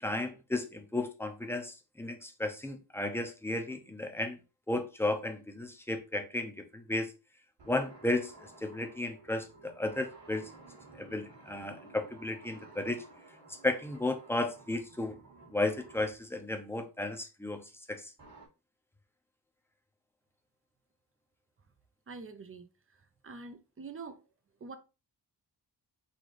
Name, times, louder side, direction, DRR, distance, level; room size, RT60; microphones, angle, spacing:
voice 1, 0.0-4.4 4.7-7.1 7.7-10.5 11.0-13.0 13.6-15.2 15.5-17.6 17.9-18.1, left 2 dB, 5° left, 0.7 m, -34 dB
sound 1, 7.6-16.2 18.2-18.5, right 3 dB, 65° right, 1.9 m, -54 dB
voice 2, 22.1-22.7 23.2-24.2 24.6-24.8, right 4 dB, 30° right, 0.6 m, -45 dB
4.1 x 3.6 x 3.2 m
wide cardioid pair, 150°, 42 cm